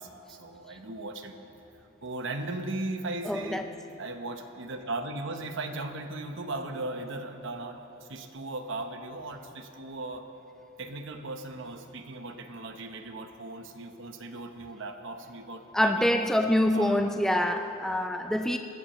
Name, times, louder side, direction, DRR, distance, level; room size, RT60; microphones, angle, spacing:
voice 1, 0.0-1.3 2.0-3.7 4.0-10.2 10.8-17.0, right 2 dB, 60° right, 6 dB, 1.0 m, -37 dB
voice 2, 3.2-3.7 15.7-18.6, left 1 dB, ahead, 5 dB, 0.3 m, -25 dB
19.5 x 15.0 x 3.1 m, 2.9 s
head